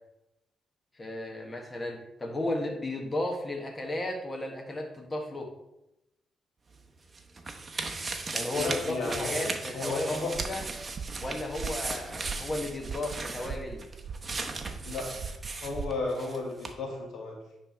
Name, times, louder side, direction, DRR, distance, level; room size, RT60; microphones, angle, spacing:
voice 1, 0.9-5.5 8.3-10.6 11.2-13.8, left 2 dB, 25° left, 1 dB, 1.4 m, -34 dB
sound 1, 6.7-16.4 16.6-16.7, right 3 dB, 30° right, 0.9 m, -37 dB
voice 2, 8.5-9.4 9.7-10.3 14.8-15.3 15.6-17.4, left 3 dB, 70° left, 0 dB, 1.7 m, -33 dB
sound 2, 10.3-16.0, right 5 dB, 60° right, 0.4 m, -41 dB
9.9 x 3.4 x 4.3 m, 0.89 s
cardioid pair, 85°, 0 cm